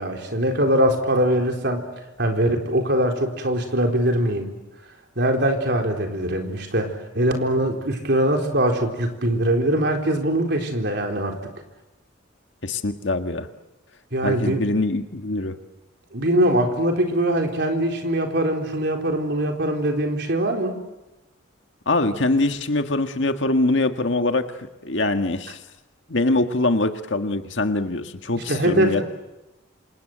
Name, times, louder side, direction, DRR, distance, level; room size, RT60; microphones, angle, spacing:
voice 1, 0.0-1.9 2.2-4.5 5.2-11.5 14.1-14.7 16.1-20.8 28.3-29.0, right 1 dB, 55° right, 3 dB, 4.2 m, -22 dB
voice 2, 12.6-13.5 14.2-15.6 21.9-24.5 24.8-25.6 26.1-29.0, left 2 dB, 65° left, 6 dB, 1.7 m, -23 dB
27.5 x 27.0 x 8.0 m, 1.0 s
head